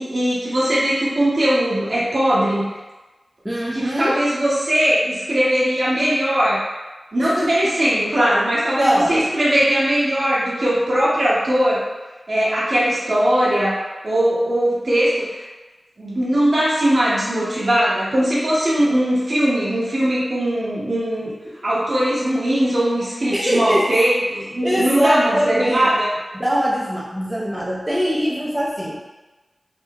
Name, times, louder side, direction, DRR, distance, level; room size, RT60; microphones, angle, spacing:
voice 1, 0.0-2.7 3.7-6.6 7.1-11.8 12.3-13.8 14.0-15.4 16.0-21.3 21.6-26.1, right 1 dB, 60° right, -8 dB, 1.1 m, -20 dB
voice 2, 3.4-4.1 7.2-7.7 8.8-9.3 23.3-23.8 24.6-25.9 26.3-29.0, equal, 10° right, -5 dB, 0.5 m, -22 dB
3.5 x 2.0 x 2.8 m, 1.2 s
wide cardioid pair, 50°, 0 cm